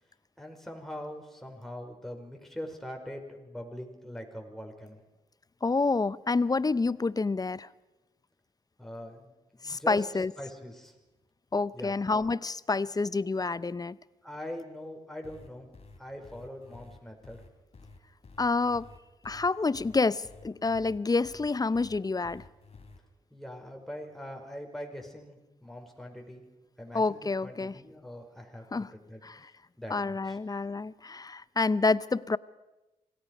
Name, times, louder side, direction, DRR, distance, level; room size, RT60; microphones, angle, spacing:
voice 1, 0.4-5.0 8.8-9.3 9.6-11.0 11.7-12.0 14.2-15.7 16.0-17.4 23.3-26.5 26.8-29.2 29.8-30.4, equal, ahead, 5.2 m, -42 dB
voice 2, 5.6-7.7 9.6-10.3 11.5-14.0 18.4-18.9 19.2-22.4 26.9-27.7 28.7-28.9 29.2-29.5 29.9-32.4, left 3 dB, 25° left, 0.6 m, -28 dB
sound 1, 15.2-23.0, left 3 dB, 40° left, 3.3 m, -51 dB
27.0 x 18.0 x 5.4 m
hypercardioid pair, 45°, 17 cm